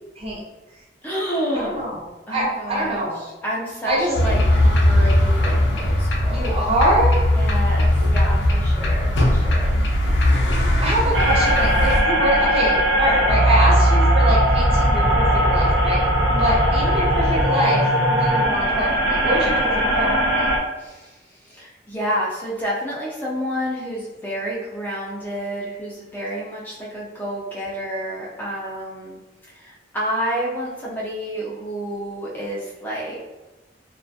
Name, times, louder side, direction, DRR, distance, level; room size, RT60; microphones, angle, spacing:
voice 1, 1.0-1.7 2.3-4.4 4.8-6.6 7.3-9.9 16.3-16.5 20.8-29.2 29.5-33.2, equal, 10° left, -6 dB, 0.4 m, -29 dB
voice 2, 1.5-3.2 3.8-4.3 6.2-7.3 10.8-16.0 16.4-17.9 18.2-20.1, equal, 35° right, -4 dB, 0.7 m, -24 dB
sound 1, 4.1-12.0, left 1 dB, 80° left, 0.5 m, -19 dB
sound 2, 11.1-20.6, right 1 dB, 85° right, 0.5 m, -19 dB
2.3 x 2.2 x 2.5 m, 1.1 s
head